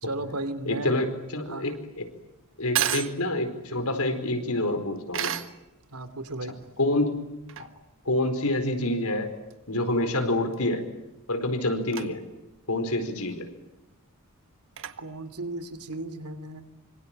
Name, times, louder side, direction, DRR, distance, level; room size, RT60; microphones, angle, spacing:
voice 1, 0.0-0.9 1.4-1.7 2.8-2.9 5.9-6.6 15.0-16.6, right 2 dB, 85° right, 11 dB, 2.8 m, -35 dB
sound 1, 0.6-16.0, right 10 dB, 60° right, 1.5 m, -37 dB
voice 2, 0.7-2.1 2.6-5.3 6.8-7.3 7.6-7.7 8.0-9.3 9.7-10.8 11.3-12.2 12.7-13.5, left 1 dB, 80° left, 8 dB, 4.7 m, -27 dB
26.0 x 25.5 x 9.2 m, 0.90 s
head